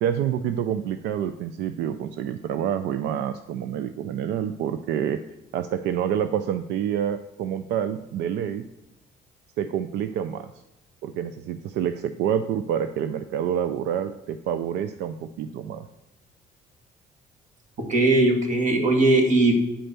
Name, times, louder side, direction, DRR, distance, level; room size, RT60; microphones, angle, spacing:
voice 1, 0.0-5.2 5.5-8.6 9.6-10.5 11.0-15.9, right 9 dB, 80° right, 11 dB, 0.5 m, -27 dB
voice 2, 17.8-19.5, right 2 dB, 45° right, 3 dB, 2.0 m, -19 dB
9.0 x 4.4 x 6.6 m, 0.96 s
cardioid pair, 110°, 17 cm